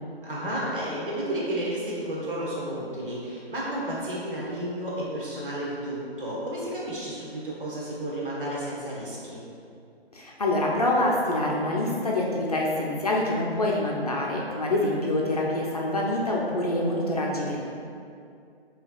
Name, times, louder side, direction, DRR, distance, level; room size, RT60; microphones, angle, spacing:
voice 1, 0.2-9.4, right 1 dB, 55° right, -6 dB, 1.4 m, -32 dB
voice 2, 10.1-17.6, left 1 dB, 40° left, -3 dB, 0.4 m, -26 dB
7.0 x 2.8 x 2.4 m, 2.5 s
figure-of-eight pair, 155°, 32 cm